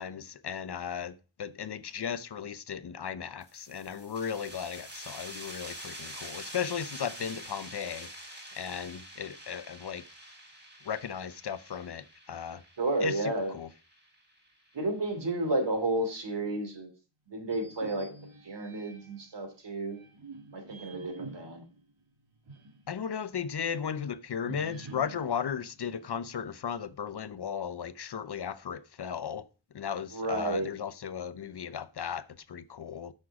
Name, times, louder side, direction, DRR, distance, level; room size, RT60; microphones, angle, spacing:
voice 1, 0.0-10.0 10.8-12.6 13.0-13.7 22.9-29.4 29.7-33.1, left 7 dB, 55° left, 0.7 m, -36 dB
sound 1, 3.4-14.7, right 1 dB, 20° right, 3.8 m, -46 dB
voice 2, 12.8-13.5 14.7-16.9 17.3-18.1 18.4-20.0 20.5-21.6 30.1-30.7, right 2 dB, 60° right, 2.9 m, -31 dB
sound 2, 17.4-19.3 19.9-22.9 23.2-23.3 24.4-26.5, right 3 dB, 80° right, 2.6 m, -47 dB
10.5 x 6.5 x 4.8 m
wide cardioid pair, 135°, 47 cm